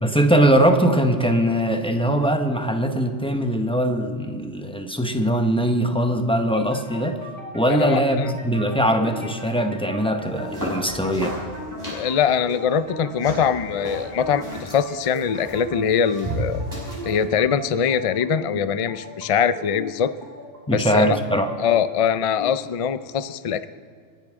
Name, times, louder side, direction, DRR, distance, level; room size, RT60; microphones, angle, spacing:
voice 1, 0.0-7.2 7.5-11.3 20.7-21.5, right 1 dB, 5° left, 5 dB, 0.8 m, -21 dB
sound 1, 6.5-22.5, equal, 45° right, 3.0 m, -38 dB
voice 2, 7.7-8.3 11.9-16.6 17.0-20.1 20.7-21.2 21.6-23.7, left 7 dB, 60° left, 13 dB, 0.3 m, -22 dB
sound 2, 10.3-17.2, equal, 15° right, 5.2 m, -34 dB
28.5 x 10.0 x 3.6 m, 2.1 s
omnidirectional pair, 1.3 m